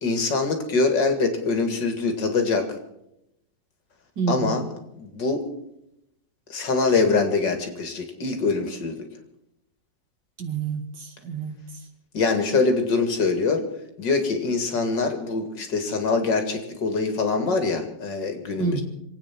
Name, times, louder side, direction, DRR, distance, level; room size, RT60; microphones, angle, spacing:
voice 1, 0.0-2.7 4.3-4.6 4.9-5.4 6.5-9.0 12.1-13.7 14.0-18.8, left 4 dB, 75° left, 5 dB, 2.8 m, -24 dB
voice 2, 4.2-4.6 10.4-11.6 18.6-18.8, right 6 dB, 75° right, 5 dB, 2.6 m, -28 dB
26.5 x 9.1 x 6.0 m, 0.83 s
omnidirectional pair, 1.9 m